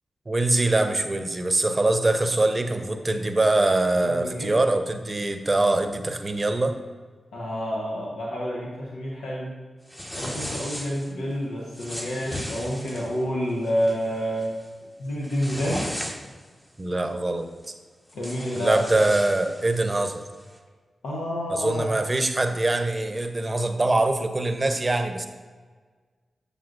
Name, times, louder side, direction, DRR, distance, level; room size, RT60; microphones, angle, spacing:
voice 1, 0.3-6.8 16.8-17.5 18.5-20.2 21.5-25.3, right 2 dB, 35° right, 7 dB, 0.7 m, -23 dB
voice 2, 4.0-4.5 7.3-9.6 10.1-14.5 15.0-15.8 18.1-18.8 21.0-21.9, equal, 90° left, -4 dB, 0.9 m, -29 dB
sound 1, 9.9-11.1 11.7-13.1 13.6-14.0 14.4-14.7 15.1-16.5 17.6-17.7 18.1-20.1, equal, 15° left, 1.2 m, -36 dB
7.4 x 6.6 x 2.5 m, 1.5 s
supercardioid pair, 40°, 0 cm